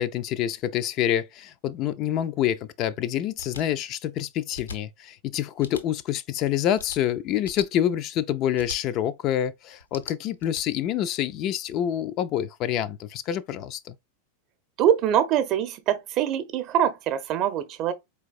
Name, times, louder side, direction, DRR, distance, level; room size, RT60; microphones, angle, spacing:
voice 1, 0.0-14.0, left 11 dB, 35° left, 0.4 m, -27 dB
sound 1, 3.4-3.6 4.5-4.8 5.6-5.8 6.7-7.0 7.4-7.7 8.6-8.8 9.8-10.6, left 4 dB, 75° left, 0.6 m, -39 dB
voice 2, 14.8-17.9, right 10 dB, 40° right, 0.7 m, -24 dB
4.5 x 3.4 x 2.4 m
figure-of-eight pair, 90°, 0 cm